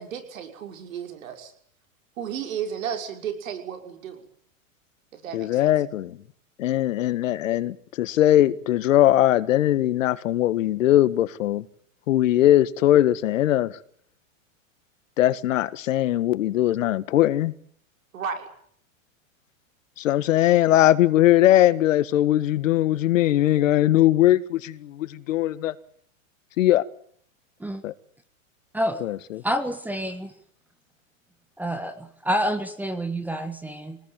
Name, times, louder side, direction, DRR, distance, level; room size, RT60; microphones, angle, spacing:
voice 1, 0.0-1.5 2.2-4.3 5.1-5.6 18.1-18.5, right 8 dB, 75° right, 6.1 m, -33 dB
voice 2, 5.3-6.3 6.6-11.7 12.1-13.8 15.2-17.5 20.0-25.7 26.6-26.8 27.8-27.9 29.0-29.4, left 13 dB, 70° left, 1.7 m, -20 dB
voice 3, 28.7-29.0 29.4-30.3 31.6-34.0, equal, 5° right, 1.6 m, -28 dB
26.0 x 19.5 x 9.3 m
supercardioid pair, 145°, 40 cm